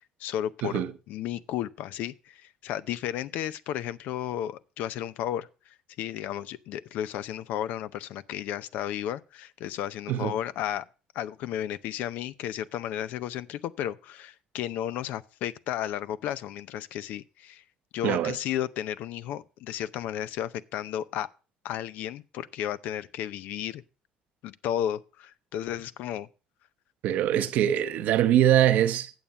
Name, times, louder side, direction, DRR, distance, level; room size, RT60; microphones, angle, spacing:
voice 1, 0.2-0.8 1.1-10.9 11.1-17.6 17.9-21.3 21.6-23.8 24.4-26.3, left 11 dB, 75° left, 0.6 m, -33 dB
voice 2, 18.0-18.4 27.0-29.1, right 11 dB, 75° right, 0.8 m, -23 dB
9.3 x 7.2 x 5.3 m
supercardioid pair, 90°, 3 cm